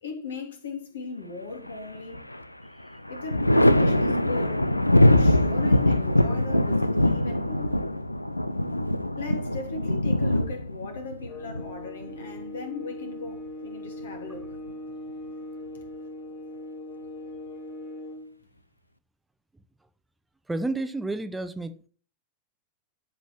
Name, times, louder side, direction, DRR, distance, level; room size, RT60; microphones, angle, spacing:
voice 1, 0.0-2.3 3.1-4.7 5.0-7.8 9.2-14.6, left 4 dB, 65° left, 2.9 m, -38 dB
Thunder, 1.7-2.4 2.8-12.4 13.9-14.7, left 1 dB, 85° left, 0.6 m, -23 dB
sound 1, 11.3-18.3, left 1 dB, 40° left, 3.1 m, -40 dB
voice 2, 20.5-21.7, right 2 dB, 5° right, 0.8 m, -30 dB
12.5 x 5.6 x 6.0 m
figure-of-eight pair, 90°, 0 cm